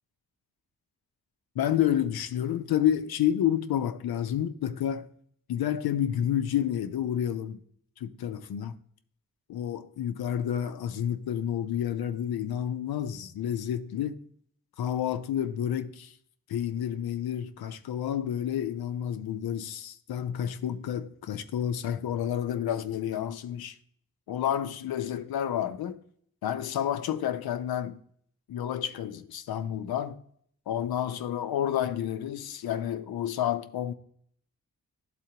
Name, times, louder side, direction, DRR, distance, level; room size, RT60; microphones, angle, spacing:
voice 1, 1.5-5.1 5.5-7.6 8.0-8.8 9.5-14.2 14.8-16.1 16.5-23.8 24.3-26.0 26.4-28.0 28.5-30.2 30.7-33.9, left 10 dB, 90° left, 0.6 m, -30 dB
11.5 x 4.1 x 2.8 m
cardioid pair, 55°, 36 cm